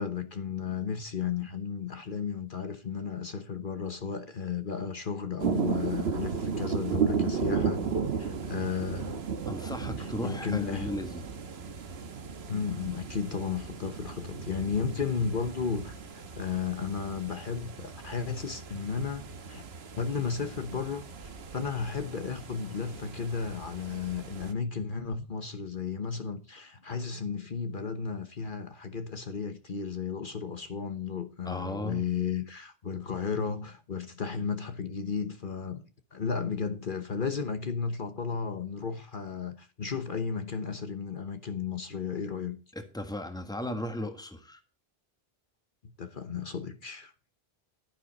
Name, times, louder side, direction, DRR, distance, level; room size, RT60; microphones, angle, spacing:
voice 1, 0.0-7.9 8.2-9.2 10.0-10.9 12.5-16.0 16.4-19.6 19.9-35.8 36.1-42.6 45.8-47.1, left 6 dB, 55° left, 1.2 m, -34 dB
sound 1, 5.4-24.5, right 6 dB, 75° right, 1.4 m, -35 dB
voice 2, 9.5-11.3 21.8-21.9 31.4-32.0 42.7-44.6, left 1 dB, 5° left, 1.5 m, -36 dB
11.5 x 10.0 x 4.1 m
omnidirectional pair, 1.1 m